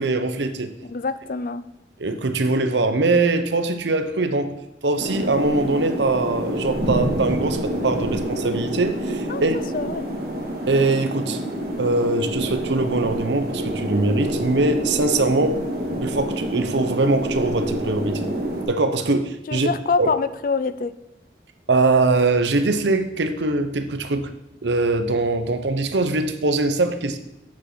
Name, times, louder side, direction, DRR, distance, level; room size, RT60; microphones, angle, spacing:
voice 1, 0.0-0.7 2.0-4.5 4.8-9.6 10.7-11.4 11.8-15.6 16.0-18.3 18.6-19.7 20.0-20.1 21.7-24.3 24.6-27.2, right 2 dB, 80° right, 9 dB, 0.9 m, -22 dB
voice 2, 0.9-1.6 9.3-9.5 9.7-10.1 19.5-20.9, left 4 dB, 50° left, 14 dB, 0.4 m, -25 dB
sound 1, 5.0-18.6, right 1 dB, 55° right, 1.9 m, -27 dB
8.5 x 6.3 x 6.2 m, 0.87 s
head